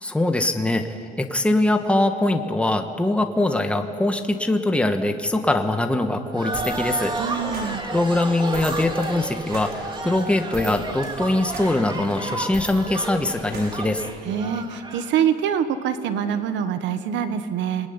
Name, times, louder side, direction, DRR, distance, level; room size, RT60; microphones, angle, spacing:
voice 1, 0.0-7.1 7.9-14.0, left 2 dB, 5° left, 5 dB, 1.7 m, -22 dB
sound 1, 6.3-15.1, right 2 dB, 25° right, 2.6 m, -32 dB
sound 2, 6.5-14.4, right 3 dB, 55° right, 6.1 m, -39 dB
voice 2, 7.2-7.8 14.2-17.9, right 8 dB, 80° right, 9 dB, 1.6 m, -25 dB
28.5 x 21.5 x 9.8 m, 2.5 s
cardioid pair, 130°, 19 cm